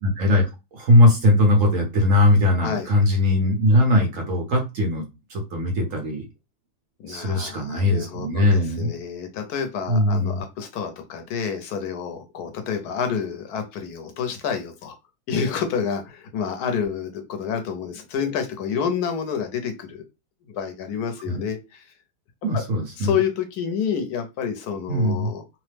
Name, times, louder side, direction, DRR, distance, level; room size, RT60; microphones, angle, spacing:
voice 1, 0.0-5.0 5.3-6.2 7.1-8.9 9.9-10.4 21.3-21.4 22.4-23.2 24.9-25.3, left 1 dB, 60° right, 1 dB, 1.2 m, -20 dB
voice 2, 7.0-15.0 15.3-20.0 20.5-21.9 22.4-22.6 23.0-25.4, left 7 dB, 80° left, 6 dB, 1.2 m, -28 dB
3.1 x 2.0 x 3.2 m, 0.26 s
omnidirectional pair, 1.6 m